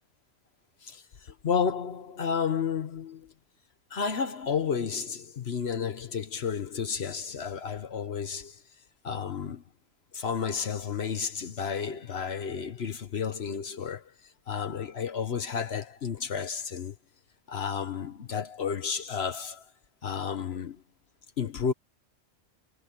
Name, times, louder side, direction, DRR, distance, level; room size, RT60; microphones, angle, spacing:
voice 1, 0.8-3.3 3.9-8.6 9.0-9.6 10.1-14.1 14.5-16.9 17.5-19.6 20.0-20.8 21.4-21.7, left 6 dB, 60° left, 1.2 m, -32 dB
omnidirectional pair, 1.2 m